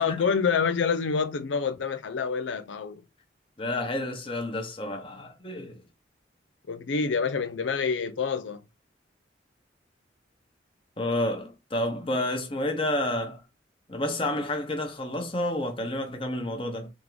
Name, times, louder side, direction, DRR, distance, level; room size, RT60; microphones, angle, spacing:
voice 1, 0.0-3.0 6.7-8.6, left 5 dB, 85° left, 0.5 m, -27 dB
voice 2, 3.6-5.8 11.0-13.4 13.9-16.9, left 1 dB, 30° left, 0.9 m, -30 dB
3.6 x 3.5 x 3.2 m
head